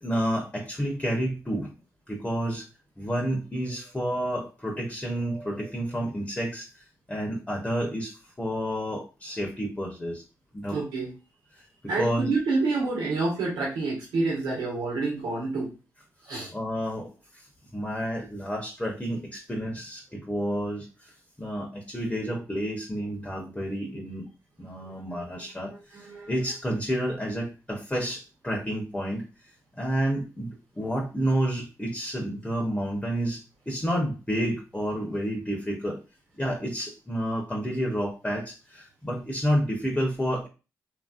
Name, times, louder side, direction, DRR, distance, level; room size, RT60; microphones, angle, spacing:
voice 1, 0.0-1.7 2.1-2.7 3.0-6.7 7.1-10.2 10.5-10.8 12.0-12.3 16.5-17.4 17.7-21.1 21.4-24.3 24.6-29.2 29.7-36.0 36.4-40.5, equal, 15° left, 1 dB, 0.9 m, -30 dB
voice 2, 10.7-11.1 11.9-15.7 16.3-16.5 25.1-25.2 25.9-26.3, right 3 dB, 85° right, -4 dB, 1.3 m, -28 dB
3.0 x 2.7 x 2.5 m, 0.31 s
supercardioid pair, 55°, 7 cm